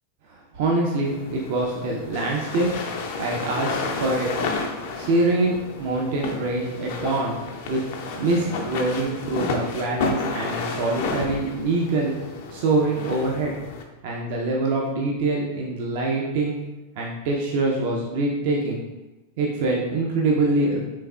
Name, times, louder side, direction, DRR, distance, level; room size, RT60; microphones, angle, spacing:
voice 1, 0.5-2.7 3.2-4.4 5.0-7.4 7.7-7.8 8.1-12.2 12.5-13.6 14.0-16.6 17.0-18.8 19.4-20.8, right 2 dB, 50° right, -2 dB, 0.4 m, -24 dB
sound 1, 1.0-13.8, left 3 dB, 50° left, 0.4 m, -31 dB
3.4 x 3.2 x 2.2 m, 1.1 s
figure-of-eight pair, 90°, 0 cm